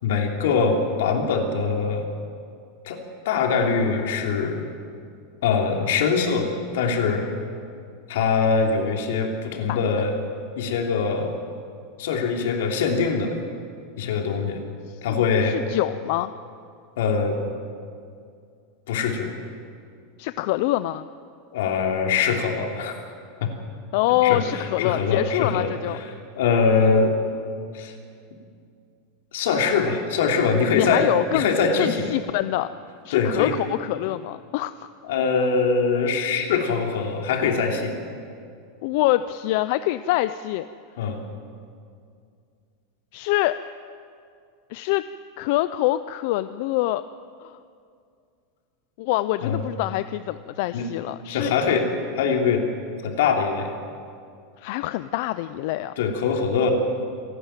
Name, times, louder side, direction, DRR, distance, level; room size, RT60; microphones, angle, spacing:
voice 1, 0.0-2.1 2.8-4.7 5.4-7.3 8.1-10.1 10.6-11.3 12.0-13.4 14.0-14.6 15.0-15.6 17.0-17.4 18.9-19.3 21.5-23.0 23.4-23.5 24.2-26.1 26.3-27.1 27.7-27.9 29.3-32.2 33.1-33.5 35.0-37.9 41.0-41.2 49.4-49.6 50.7-50.9 51.3-51.9 52.1-52.7 53.0-53.7 56.0-56.7, left 5 dB, 75° left, 2 dB, 3.2 m, -23 dB
voice 2, 14.9-16.3 20.2-21.1 23.9-26.0 30.7-31.5 31.8-32.7 33.0-34.7 38.8-40.7 43.1-43.6 44.7-45.0 45.4-47.0 47.4-47.6 49.0-51.5 54.6-55.9, left 16 dB, 50° left, 13 dB, 0.5 m, -25 dB
27.5 x 11.5 x 9.1 m, 2.3 s
supercardioid pair, 170°, 0 cm